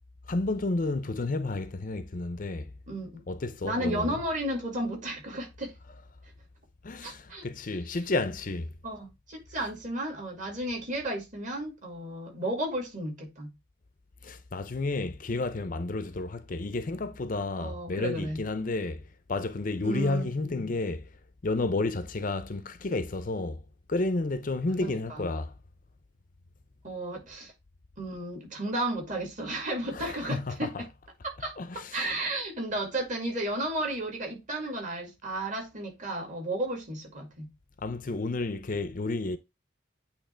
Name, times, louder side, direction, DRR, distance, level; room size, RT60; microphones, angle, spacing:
voice 1, 0.3-2.7 3.3-4.2 6.8-8.7 14.2-21.1 21.4-23.6 23.9-25.5 29.9-30.8 31.6-32.0 37.8-39.4, left 2 dB, 40° left, 0.6 m, -31 dB
voice 2, 2.9-3.2 3.6-5.7 7.0-7.4 8.8-13.5 17.6-18.4 19.8-20.7 24.8-25.3 26.8-27.5 28.0-30.9 31.2-37.5, right 1 dB, 40° right, 2.2 m, -33 dB
8.8 x 3.0 x 4.3 m
head